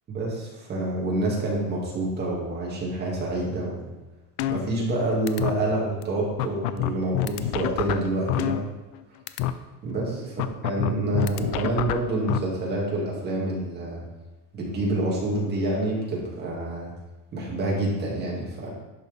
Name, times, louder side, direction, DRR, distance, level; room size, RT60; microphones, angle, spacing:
voice 1, 0.1-3.8 4.5-8.6 9.8-10.3 10.6-14.0 14.5-16.9 17.3-18.7, right 2 dB, 20° right, -4 dB, 2.2 m, -27 dB
sound 1, 4.4-5.0 5.3-5.5 6.0-6.1 6.4-9.0 9.3-9.5 10.4-12.4, left 13 dB, 85° left, 0.7 m, -27 dB
11.0 x 6.1 x 3.5 m, 1.1 s
cardioid pair, 180°, 45 cm